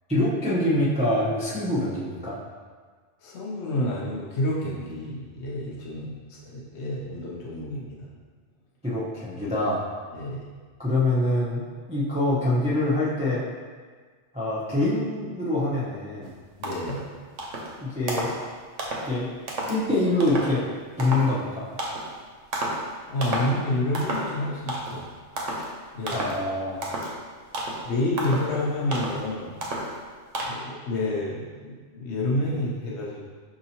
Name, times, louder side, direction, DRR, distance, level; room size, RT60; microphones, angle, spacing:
voice 1, 0.1-2.4 8.8-9.8 10.8-13.4 14.3-16.3 17.8-18.3 19.1-19.3 19.7-20.6 21.0-21.6 26.1-26.8, left 1 dB, 10° right, -9 dB, 0.4 m, -25 dB
voice 2, 3.2-8.0 10.1-10.5 16.6-17.0 23.1-25.1 25.9-26.5 27.8-29.5 30.4-33.2, left 1 dB, 70° left, -5 dB, 0.9 m, -29 dB
sound 1, 16.2-16.3 16.6-17.0 17.4-17.7 18.1-18.4 18.8-19.1 19.5-19.8 20.2-20.5 21.0-21.3 21.8-22.1 22.5-22.9 23.2-23.6 23.9-24.4 24.7-25.0 25.4-25.7 26.1-26.4 26.8-27.1 27.5-27.9 28.2-28.5 28.9-29.2 29.6-30.0 30.3-30.5, right 1 dB, 85° right, 1.1 m, -31 dB
5.5 x 2.8 x 2.8 m, 1.5 s
omnidirectional pair, 1.3 m